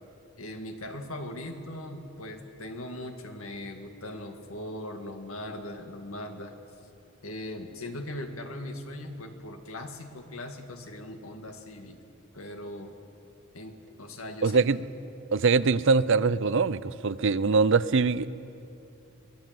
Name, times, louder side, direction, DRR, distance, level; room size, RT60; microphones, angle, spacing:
voice 1, 0.4-6.5 7.2-12.0 12.3-12.9 13.5-14.6, left 1 dB, 80° left, 5 dB, 2.0 m, -39 dB
voice 2, 14.4-14.8 15.3-18.3, right 4 dB, 60° right, 16 dB, 0.6 m, -23 dB
24.0 x 16.5 x 7.7 m, 2.8 s
head